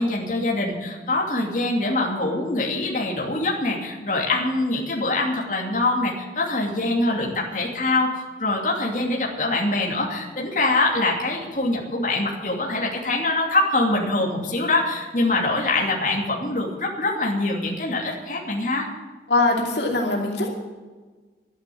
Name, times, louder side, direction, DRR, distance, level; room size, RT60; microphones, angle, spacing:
voice 1, 0.0-18.9, left 2 dB, 45° left, -2 dB, 2.7 m, -24 dB
voice 2, 19.3-20.5, left 2 dB, 85° left, 0 dB, 2.6 m, -22 dB
12.5 x 10.5 x 8.6 m, 1.4 s
head